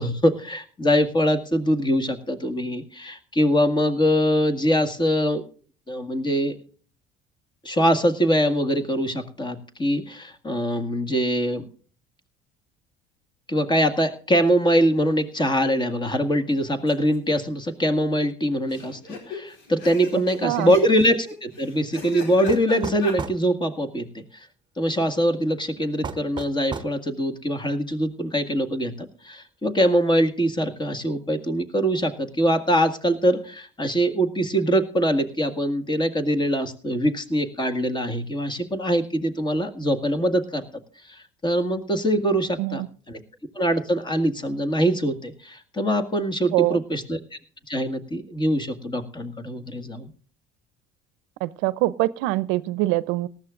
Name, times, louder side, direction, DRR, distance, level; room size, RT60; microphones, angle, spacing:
voice 1, 0.0-5.4 5.9-6.6 7.6-11.6 13.5-24.5 24.8-40.6 41.1-43.2 43.6-47.4 47.7-50.1, equal, 20° left, 1.9 m, -23 dB
sound 1, 16.9-17.4 17.7-17.8 18.0-18.1 18.7-23.2, left 4 dB, 70° left, 4.4 m, -38 dB
voice 2, 20.4-20.7 42.6-42.9 46.5-46.8 51.4-53.3, right 18 dB, 75° right, 0.6 m, -24 dB
sound 2, 22.5-23.4 26.0-27.0, right 5 dB, 20° right, 1.0 m, -33 dB
18.5 x 13.5 x 2.5 m
supercardioid pair, 85°, 20 cm